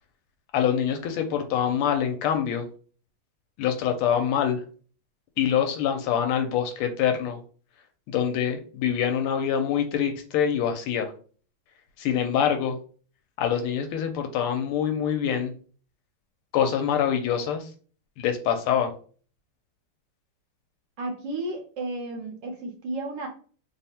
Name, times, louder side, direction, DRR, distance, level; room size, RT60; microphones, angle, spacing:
voice 1, 0.5-2.7 3.6-4.6 5.4-7.4 8.1-11.1 12.0-12.8 13.4-15.5 16.5-17.6 18.2-18.9, left 8 dB, 80° left, 5 dB, 1.4 m, -25 dB
voice 2, 21.0-23.3, right 2 dB, 65° right, 2 dB, 1.2 m, -33 dB
3.5 x 2.0 x 4.2 m, 0.41 s
omnidirectional pair, 2.4 m